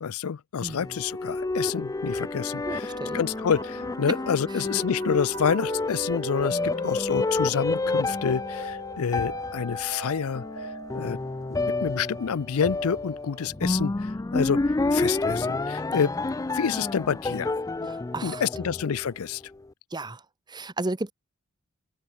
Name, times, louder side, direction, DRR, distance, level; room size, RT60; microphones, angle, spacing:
voice 1, 0.0-11.2 11.5-14.6 14.9-16.1 16.5-17.5 18.2-19.4, left 7 dB, 75° left, 0.5 m, -28 dB
voice 2, 0.6-0.9 2.7-3.2 6.5-6.9 17.9-18.4 19.9-20.2 20.5-21.1, right 2 dB, 20° right, 1.0 m, -34 dB
sound 1, 0.7-19.3, left 3 dB, 15° left, 0.4 m, -29 dB
sound 2, 2.9-13.9, right 4 dB, 60° right, 1.6 m, -43 dB
open air
head